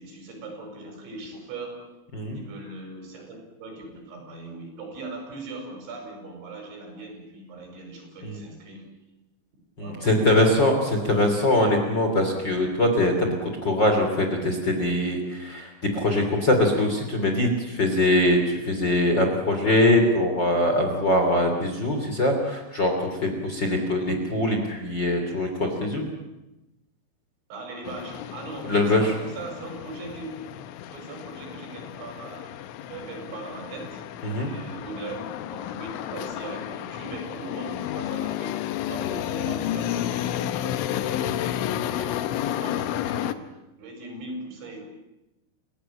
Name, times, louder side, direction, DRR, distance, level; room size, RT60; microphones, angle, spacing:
voice 1, 0.0-1.8 2.3-8.9 9.8-10.4 10.7-11.5 27.5-30.4 30.9-32.5 32.9-34.0 34.4-35.2 35.5-38.6 38.9-43.4 43.8-44.8, right 2 dB, 75° right, 3 dB, 7.8 m, -40 dB
voice 2, 9.8-26.1 28.7-29.1 34.2-34.5, left 1 dB, 25° left, 3 dB, 3.0 m, -22 dB
sound 1, 27.9-43.3, left 11 dB, 90° left, 3.5 m, -31 dB
29.0 x 17.5 x 8.9 m, 0.99 s
omnidirectional pair, 5.3 m